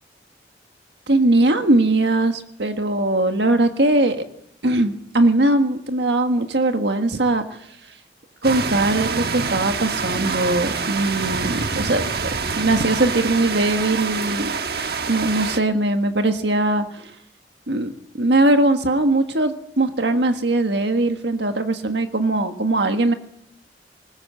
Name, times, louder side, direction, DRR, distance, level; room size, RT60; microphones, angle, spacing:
voice 1, 1.1-4.2 4.6-7.6 8.4-12.0 12.6-14.5 15.1-17.1 17.7-23.1, right 2 dB, 80° right, 6 dB, 1.6 m, -20 dB
sound 1, 8.4-15.6, right 4 dB, 60° right, 1.3 m, -26 dB
20.5 x 19.5 x 7.8 m, 0.72 s
head